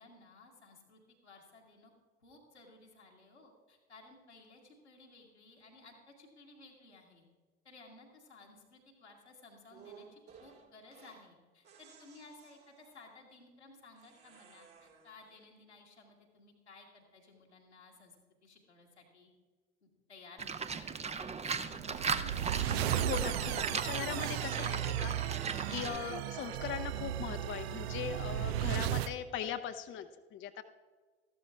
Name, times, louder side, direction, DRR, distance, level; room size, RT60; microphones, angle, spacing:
voice 1, 0.0-1.9 2.2-7.3 7.6-18.2 18.4-19.3 19.8-21.7, left 3 dB, 85° left, -1 dB, 1.9 m, -57 dB
sound 1, 9.7-11.3 11.6-13.1 14.0-15.4, right 6 dB, 45° right, 2.1 m, -58 dB
Livestock farm animals working animals, 20.4-26.0, right 5 dB, 20° right, 0.7 m, -38 dB
sound 2, 21.7-29.1, right 12 dB, 65° right, 0.5 m, -35 dB
voice 2, 22.7-25.4 25.7-30.6, left 9 dB, 35° left, 8 dB, 0.7 m, -40 dB
14.0 x 12.0 x 3.4 m, 1.4 s
figure-of-eight pair, 60°, 33 cm